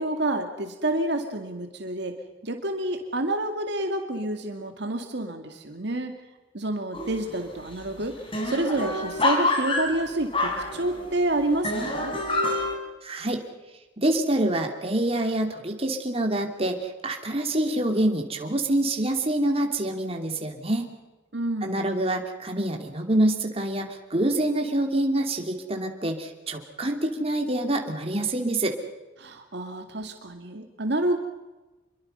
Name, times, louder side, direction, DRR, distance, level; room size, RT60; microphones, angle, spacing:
voice 1, 0.0-2.2 2.4-6.1 6.5-8.1 8.4-12.1 21.3-21.8 29.2-31.2, right 1 dB, 60° right, 5 dB, 2.2 m, -28 dB
sound 1, 6.9-7.4 7.7-7.8 8.0-11.2 11.6-12.7, left 2 dB, 30° left, 4.2 m, -27 dB
voice 2, 13.0-13.4 14.0-20.9 21.6-28.8, right 1 dB, 30° right, 3 dB, 2.9 m, -26 dB
27.5 x 23.0 x 5.6 m, 1.1 s
head